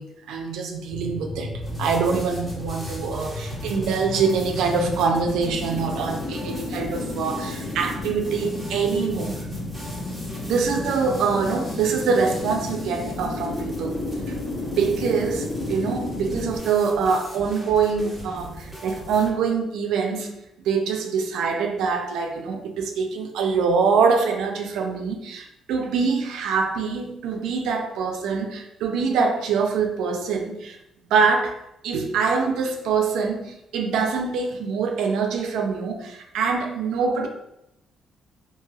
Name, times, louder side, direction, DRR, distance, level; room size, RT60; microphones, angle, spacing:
voice 1, 0.0-9.5 10.4-14.0 14.3-14.4 14.8-20.3 20.6-30.8 31.1-31.6 31.8-37.3, right 5 dB, 85° right, 3 dB, 0.4 m, -24 dB
sound 1, 0.9-16.6, left 2 dB, 70° left, 0.6 m, -33 dB
sound 2, 1.6-19.3, right 1 dB, ahead, 1.3 m, -39 dB
3.1 x 2.7 x 2.3 m, 0.84 s
cardioid pair, 90°, 0 cm